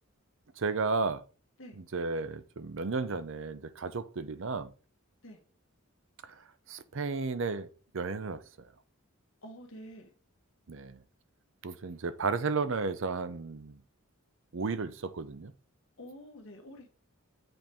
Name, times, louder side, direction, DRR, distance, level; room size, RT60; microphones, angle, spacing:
voice 1, 0.6-1.2 1.8-4.7 6.7-7.7 7.9-8.4 10.7-11.0 11.6-13.8 14.5-15.5, right 4 dB, 60° right, 0.6 m, -33 dB
voice 2, 9.4-10.1 16.0-16.9, equal, 65° left, 1.6 m, -48 dB
7.8 x 4.5 x 3.5 m
head